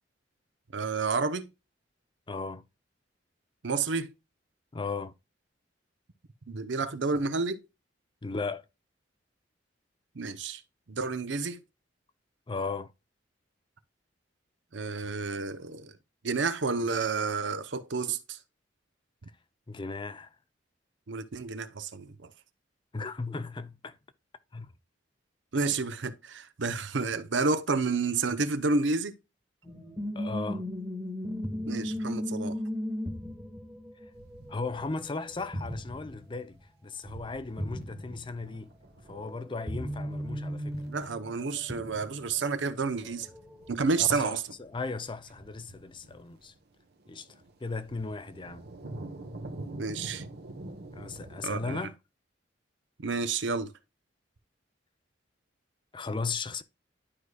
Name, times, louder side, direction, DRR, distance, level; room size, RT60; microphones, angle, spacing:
voice 1, 0.7-1.5 3.6-4.1 6.5-7.6 10.1-10.6 10.9-11.6 14.7-15.9 16.2-18.4 21.1-22.3 25.5-29.1 31.7-32.6 40.9-43.3 43.7-44.4 49.7-50.2 51.4-51.8 53.0-53.7, right 4 dB, 75° right, 0.8 m, -30 dB
voice 2, 2.3-2.6 4.7-5.1 8.2-8.6 12.5-12.9 19.7-20.3 22.9-23.9 24.5-24.7 30.2-30.6 34.5-38.7 39.1-40.8 44.0-46.5 47.1-47.3 47.6-48.7 50.9-51.9 55.9-56.6, left 4 dB, 25° left, 0.5 m, -36 dB
sound 1, 29.6-35.3 35.5-36.3 36.6-36.7 37.6-38.3 39.1-42.5 43.2-43.7, equal, 5° right, 1.3 m, -36 dB
sound 2, 34.1-36.2 36.5-36.7 37.0-51.8, right 2 dB, 60° right, 1.1 m, -47 dB
11.5 x 4.8 x 2.3 m
head